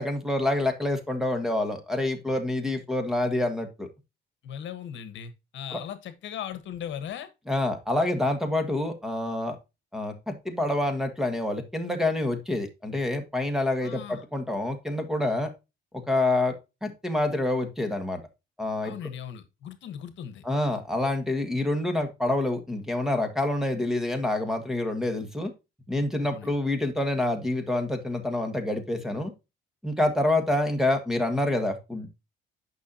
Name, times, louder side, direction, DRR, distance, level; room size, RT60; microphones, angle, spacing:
voice 1, 0.0-3.9 5.7-5.8 7.5-9.6 9.9-15.5 16.1-16.5 16.8-18.2 18.6-18.9 20.4-25.5 25.9-29.3 29.8-32.1, left 1 dB, ahead, 1.6 m, -27 dB
voice 2, 4.4-7.3 13.8-14.3 18.8-20.4 26.2-26.5, left 9 dB, 65° left, 1.3 m, -38 dB
9.5 x 5.7 x 2.8 m
cardioid pair, 130°, 21 cm